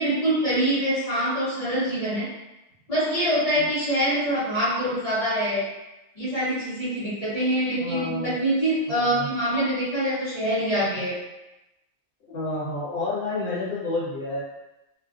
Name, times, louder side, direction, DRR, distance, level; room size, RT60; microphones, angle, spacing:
voice 1, 0.0-2.3 2.9-5.6 6.2-11.2, equal, 35° left, -14 dB, 0.8 m, -24 dB
voice 2, 7.8-8.3 8.9-9.3 12.3-14.4, left 2 dB, 55° left, -8 dB, 1.2 m, -30 dB
2.4 x 2.2 x 2.4 m, 0.96 s
omnidirectional pair, 1.2 m